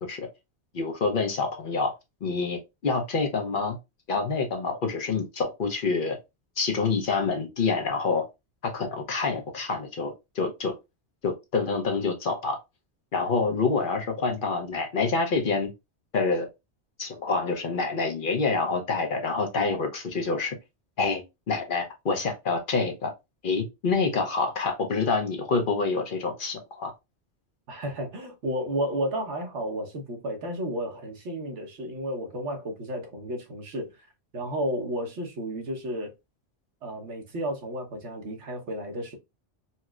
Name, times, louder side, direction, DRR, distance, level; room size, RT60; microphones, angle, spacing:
voice 1, 0.7-1.9 2.2-3.8 4.1-6.2 6.6-8.2 8.6-10.7 11.2-12.6 13.1-15.7 16.1-16.5 17.0-20.6 21.0-23.1 23.4-26.9, left 4 dB, 55° left, 0.8 m, -27 dB
voice 2, 27.7-34.1 34.3-36.1 36.8-39.2, equal, 90° right, 1.2 m, -32 dB
4.2 x 2.0 x 2.3 m
omnidirectional pair, 1.1 m